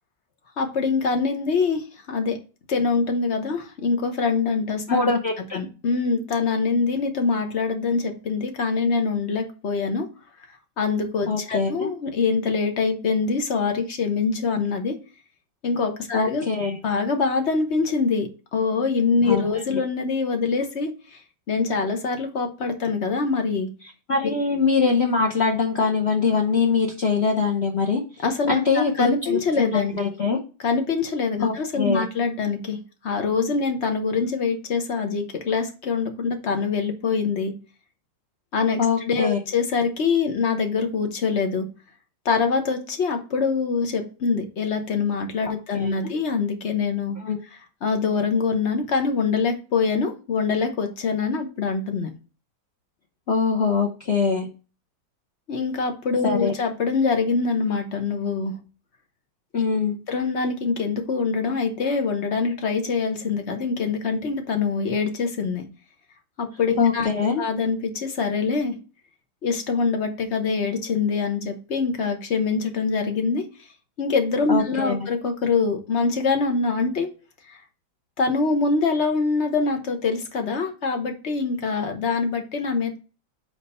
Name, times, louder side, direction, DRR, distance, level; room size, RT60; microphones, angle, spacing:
voice 1, 0.6-2.4 2.7-5.0 5.5-10.1 10.8-14.9 15.6-16.4 16.8-20.9 21.5-23.7 24.2-24.3 28.2-30.0 30.6-32.8 33.0-37.5 38.5-41.7 42.2-47.2 47.5-52.1 55.5-58.5 60.1-65.6 66.4-67.1 67.4-68.7 69.4-73.4 74.0-77.1 77.5-77.6 78.2-83.0, left 4 dB, 45° left, 5 dB, 1.0 m, -24 dB
voice 2, 4.9-5.6 11.3-11.9 16.1-16.8 19.3-19.4 24.1-28.0 28.5-30.4 31.4-32.1 38.8-39.4 45.5-45.9 47.2-47.4 53.3-54.5 56.2-56.5 59.5-60.0 66.8-67.4 74.5-75.0, left 5 dB, 60° left, 0 dB, 0.6 m, -23 dB
5.1 x 4.1 x 5.3 m, 0.35 s
omnidirectional pair, 2.1 m